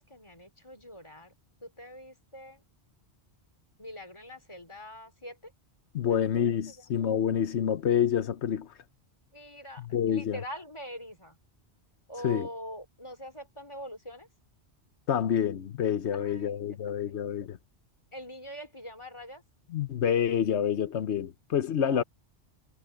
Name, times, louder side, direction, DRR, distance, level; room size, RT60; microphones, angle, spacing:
voice 1, 0.0-1.3 1.6-2.6 3.8-5.5 6.0-6.9 9.3-11.4 12.1-14.3 16.1-17.2 18.1-19.4 21.8-22.0, equal, 25° left, 3.3 m, -44 dB
voice 2, 5.9-8.7 9.8-10.4 12.2-12.5 15.1-17.6 19.7-22.0, left 9 dB, 90° left, 1.2 m, -27 dB
omnidirectional pair, 1.1 m